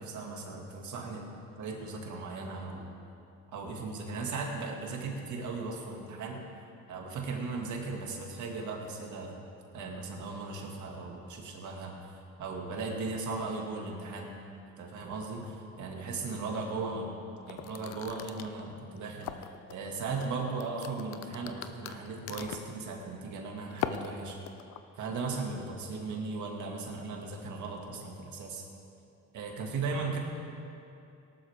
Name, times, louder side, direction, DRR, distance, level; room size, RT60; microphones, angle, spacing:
voice 1, 0.0-2.9 3.5-6.5 6.9-9.3 9.7-12.0 12.4-14.4 14.8-17.1 17.5-24.4 24.9-28.7 29.3-30.2, right 3 dB, 75° right, 0 dB, 2.1 m, -37 dB
sound 1, 17.5-19.7 20.2-22.8 23.7-24.8, left 10 dB, 85° left, 0.7 m, -39 dB
18.0 x 12.0 x 3.6 m, 2.7 s
cardioid pair, 90°, 30 cm